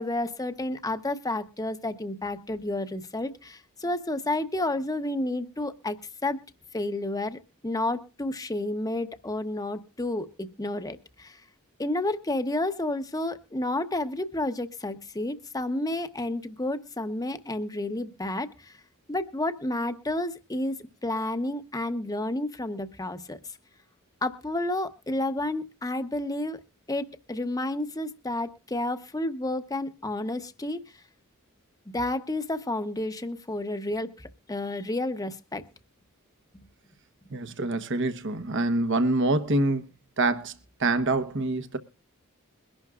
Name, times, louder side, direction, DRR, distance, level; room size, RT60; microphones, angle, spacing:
voice 1, 0.0-6.0 6.2-6.4 6.7-11.4 11.8-18.7 19.1-20.7 21.0-23.4 24.2-26.6 26.9-30.8 31.9-35.6, left 1 dB, 15° left, 0.9 m, -31 dB
voice 2, 37.3-39.8 40.2-40.5 40.8-41.8, right 2 dB, 60° right, 1.1 m, -25 dB
22.5 x 11.5 x 2.4 m
head